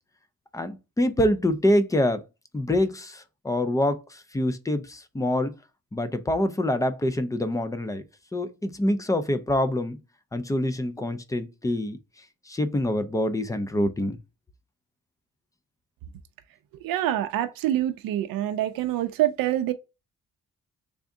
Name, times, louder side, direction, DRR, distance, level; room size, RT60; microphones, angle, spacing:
voice 1, 0.5-2.2 2.5-5.5 5.9-8.0 8.3-10.0 10.3-12.0 12.5-14.2, left 1 dB, 10° left, 0.3 m, -25 dB
voice 2, 16.8-19.7, right 12 dB, 85° right, 0.5 m, -26 dB
3.5 x 2.6 x 3.5 m
cardioid pair, 120°, 34 cm